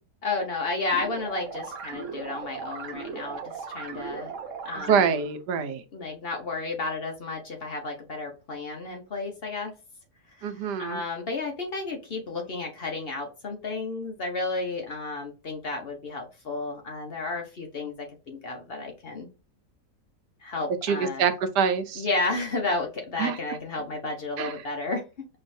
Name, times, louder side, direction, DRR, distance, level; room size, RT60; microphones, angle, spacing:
voice 1, 0.2-4.3 4.6-5.1 5.9-9.7 10.4-10.5 10.8-19.3 20.4-21.2 22.0-25.3, left 3 dB, 45° left, 2 dB, 0.9 m, -32 dB
sound 1, 0.9-5.3, right 5 dB, 55° right, 1.2 m, -38 dB
voice 2, 4.8-5.8 10.4-11.0 20.8-22.1 23.2-23.4 24.4-24.6, right 6 dB, 85° right, 9 dB, 1.3 m, -25 dB
5.4 x 2.9 x 2.6 m, 0.30 s
omnidirectional pair, 1.7 m